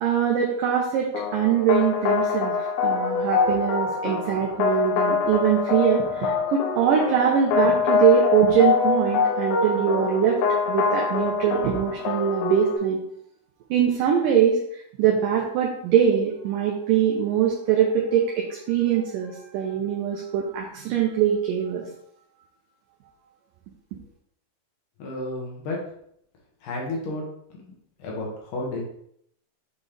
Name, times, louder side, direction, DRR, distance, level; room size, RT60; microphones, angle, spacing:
voice 1, 0.0-10.4 10.7-13.0 13.7-21.9, right 8 dB, 75° right, 0 dB, 2.2 m, -22 dB
sound 1, 1.1-12.8, left 5 dB, 85° left, 2.6 m, -24 dB
voice 2, 25.0-25.8 26.6-27.3 27.6-27.7 28.0-28.8, left 2 dB, 70° left, -2 dB, 2.7 m, -31 dB
7.2 x 4.1 x 3.4 m, 0.71 s
omnidirectional pair, 4.2 m